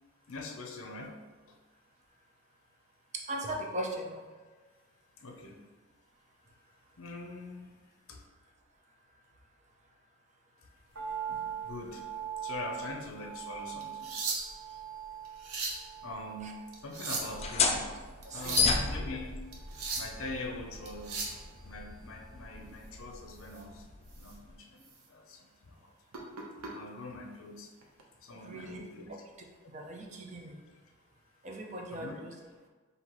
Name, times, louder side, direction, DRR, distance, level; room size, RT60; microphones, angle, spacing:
voice 1, 0.3-1.2 1.5-1.6 5.2-5.6 7.0-7.8 8.1-8.2 11.3-12.1 12.4-14.1 14.6-14.8 16.0-17.9 18.3-19.5 19.9-21.4 21.6-23.8 24.2-25.9 26.7-27.7 28.2-29.2 31.9-32.2, left 2 dB, 65° left, 2 dB, 0.6 m, -43 dB
voice 2, 3.1-4.2 16.4-16.5 18.2-18.7 28.4-28.8 29.1-29.2 29.7-30.6 31.4-32.3, right 1 dB, 30° right, 0 dB, 0.6 m, -39 dB
sound 1, 10.9-23.2 23.5-23.6, right 8 dB, 60° right, 1.0 m, -44 dB
sound 2, 13.8-14.7 15.2-15.8 16.7-17.5 18.2-18.8 19.5-20.2 20.9-21.4 23.4-23.6 24.1-24.3 24.8-24.9 26.1-26.7 27.8-28.0, right 4 dB, 85° right, 0.8 m, -36 dB
sound 3, 17.2-24.5, left 4 dB, 30° left, 0.3 m, -34 dB
5.6 x 2.7 x 3.0 m, 1.4 s
head